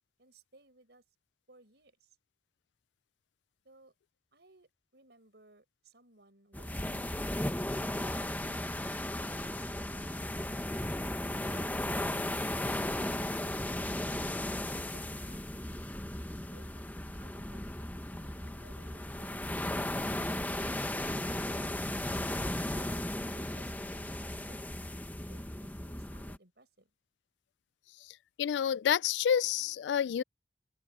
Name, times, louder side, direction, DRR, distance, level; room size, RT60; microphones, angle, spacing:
voice 1, 0.2-1.0 1.5-2.2 3.6-3.9 4.3-7.4 10.9-11.1 16.5-19.6 22.7-23.0 23.3-23.7 24.5-26.9, right 2 dB, 70° right, 6.1 m, -61 dB
sound 1, 6.5-26.4, left 1 dB, 10° left, 1.1 m, -36 dB
voice 2, 28.4-30.2, left 8 dB, 80° left, 0.3 m, -28 dB
open air
head